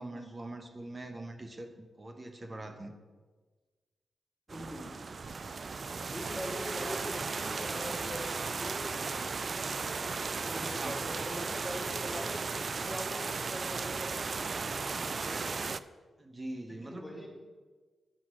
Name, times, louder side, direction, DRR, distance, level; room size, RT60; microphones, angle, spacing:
voice 1, 0.0-2.9 6.2-6.5 10.5-11.0 12.1-12.3 16.2-17.3, right 1 dB, 35° right, 6 dB, 1.3 m, -43 dB
voice 2, 4.5-4.9 6.1-15.7 16.8-17.3, equal, 5° left, -1 dB, 3.7 m, -43 dB
sound 1, 4.5-15.8, right 4 dB, 55° right, 0.4 m, -36 dB
10.0 x 6.0 x 6.2 m, 1.4 s
supercardioid pair, 50°, 0 cm